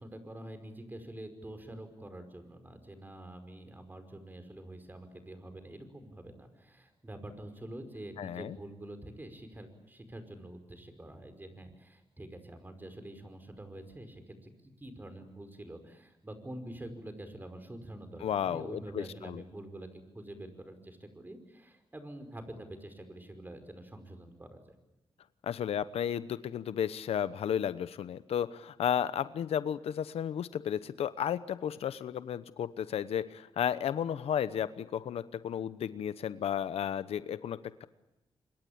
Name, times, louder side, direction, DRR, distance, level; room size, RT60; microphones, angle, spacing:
voice 1, 0.0-24.7, right 1 dB, 20° right, 8 dB, 5.2 m, -46 dB
voice 2, 8.2-8.6 18.2-19.4 25.4-37.9, left 9 dB, 90° left, 15 dB, 1.0 m, -33 dB
26.5 x 23.0 x 8.7 m, 0.93 s
cardioid pair, 80°, 10 cm